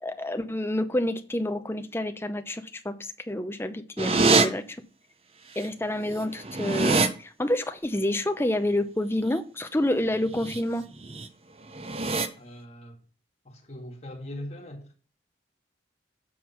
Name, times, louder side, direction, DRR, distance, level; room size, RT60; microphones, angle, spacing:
voice 1, 0.0-4.8 5.6-10.8, left 1 dB, 15° left, 0.7 m, -28 dB
sound 1, 4.0-4.5 5.6-5.7 6.0-7.1 10.3-10.6 11.0-11.3 11.7-12.3, right 3 dB, 30° right, 0.7 m, -24 dB
voice 2, 12.4-13.0 13.4-14.9, left 1 dB, 35° left, 2.0 m, -40 dB
7.5 x 6.1 x 5.8 m
head